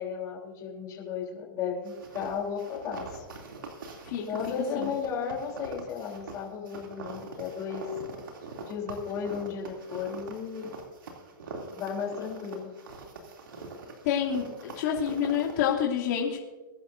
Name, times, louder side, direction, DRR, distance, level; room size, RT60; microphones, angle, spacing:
voice 1, 0.0-3.2 4.3-7.9 8.7-10.7 11.8-12.7, left 6 dB, 30° left, -2 dB, 3.6 m, -34 dB
sound 1, 1.9-15.7, right 3 dB, 85° right, 2.9 m, -43 dB
voice 2, 14.0-16.4, left 8 dB, 55° left, -3 dB, 2.9 m, -28 dB
22.5 x 11.5 x 2.7 m, 1.2 s
hypercardioid pair, 140°, 11 cm